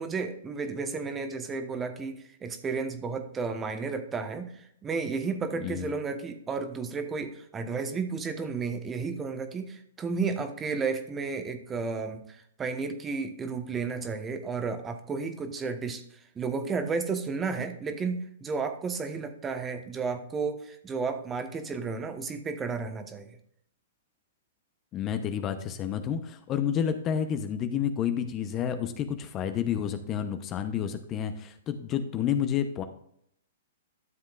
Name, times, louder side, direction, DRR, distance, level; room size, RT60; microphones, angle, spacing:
voice 1, 0.0-23.3, right 4 dB, 20° right, 7 dB, 1.2 m, -33 dB
voice 2, 5.6-5.9 24.9-32.8, left 8 dB, 30° left, 9 dB, 0.8 m, -30 dB
12.5 x 7.4 x 2.5 m, 0.68 s
hypercardioid pair, 120°, 0 cm